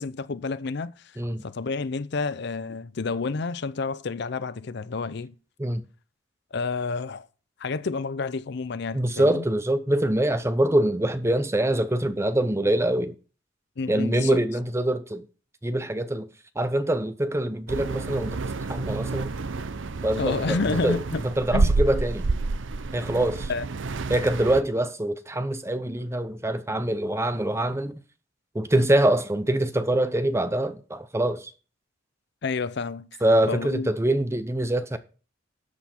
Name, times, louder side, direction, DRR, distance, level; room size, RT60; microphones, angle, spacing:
voice 1, 0.0-5.3 6.5-7.3 7.6-9.4 13.8-14.4 20.2-21.2 21.5-21.7 23.5-23.7 32.4-33.1 33.5-33.9, left 4 dB, 60° left, 0.5 m, -29 dB
voice 2, 8.9-13.2 13.9-15.2 15.6-16.3 16.6-19.3 20.0-21.0 21.2-22.3 22.9-23.5 24.1-28.0 28.5-31.5 33.2-35.0, right 1 dB, 15° right, 0.7 m, -24 dB
sound 1, 17.7-24.6, right 3 dB, 75° right, 0.7 m, -29 dB
13.0 x 8.2 x 4.4 m
head